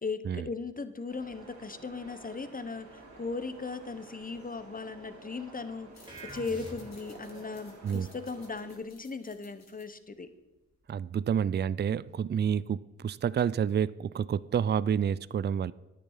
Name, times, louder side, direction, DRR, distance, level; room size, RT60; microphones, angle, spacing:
voice 1, 0.0-6.1 6.3-10.3, left 4 dB, 30° left, 11 dB, 1.0 m, -38 dB
sound 1, 1.1-8.8, right 3 dB, 85° right, 3.0 m, -51 dB
sound 2, 5.9-11.0, left 3 dB, 65° left, 2.6 m, -60 dB
sound 3, 6.1-7.2, right 1 dB, 15° right, 2.9 m, -44 dB
voice 2, 10.9-15.7, right 8 dB, 35° right, 20 dB, 0.4 m, -29 dB
10.5 x 8.9 x 5.6 m, 1.1 s
cardioid pair, 45°, 29 cm